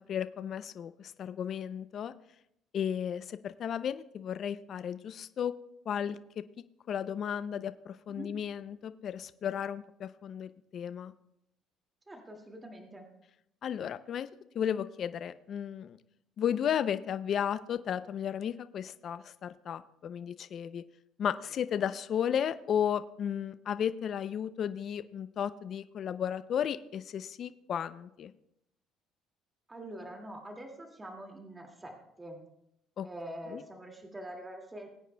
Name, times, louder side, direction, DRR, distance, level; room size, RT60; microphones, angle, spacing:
voice 1, 0.0-2.1 2.7-5.5 5.9-6.2 6.9-11.1 13.6-14.3 14.5-16.0 16.4-20.8 21.2-28.3 33.0-33.1 33.5-33.6, left 8 dB, 50° left, 13 dB, 0.4 m, -34 dB
voice 2, 12.1-13.1 29.7-32.4 33.0-34.9, right 1 dB, 15° right, 2 dB, 2.1 m, -45 dB
21.0 x 9.2 x 2.2 m, 0.80 s
cardioid pair, 105°, 0 cm